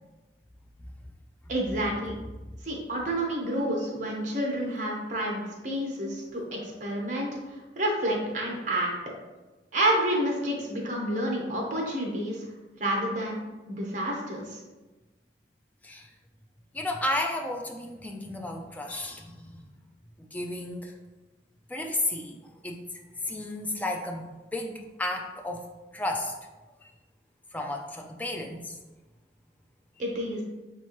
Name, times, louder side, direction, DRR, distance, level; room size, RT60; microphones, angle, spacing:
voice 1, 1.5-2.1 2.6-7.3 7.8-8.9 9.7-12.4 12.8-14.6 30.0-30.4, right 1 dB, 45° right, -1 dB, 1.0 m, -29 dB
voice 2, 16.7-19.6 20.2-20.9 21.7-22.4 22.6-22.8 23.2-25.7 25.9-26.3 26.8-26.9 27.5-28.8, left 1 dB, 10° left, 2 dB, 0.3 m, -33 dB
4.4 x 3.5 x 2.9 m, 1.2 s
head